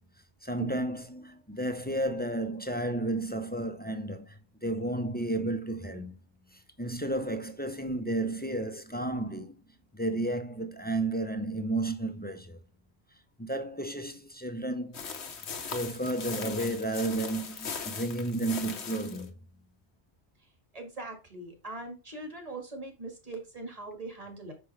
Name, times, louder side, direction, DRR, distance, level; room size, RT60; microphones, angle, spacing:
voice 1, 0.4-6.1 6.5-9.5 9.9-12.6 13.4-15.0 15.6-19.3, right 1 dB, 10° left, 0.6 m, -32 dB
sound 1, 14.9-19.3, left 6 dB, 90° left, 1.2 m, -39 dB
voice 2, 20.7-24.5, right 2 dB, 35° right, 1.9 m, -41 dB
5.8 x 5.5 x 3.3 m
omnidirectional pair, 1.1 m